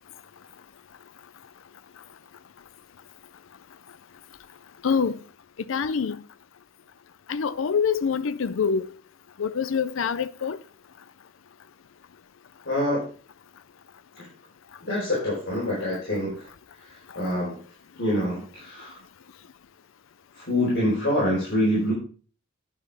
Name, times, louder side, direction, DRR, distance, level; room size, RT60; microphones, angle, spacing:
voice 1, 4.8-5.2 5.7-6.2 7.3-8.9 9.4-10.6, left 6 dB, 75° left, 0.5 m, -25 dB
voice 2, 12.6-13.0 14.2-14.3 14.8-16.5 17.1-17.6 18.0-19.0 20.3-21.9, left 1 dB, 60° left, 4.4 m, -25 dB
9.8 x 6.6 x 4.8 m
head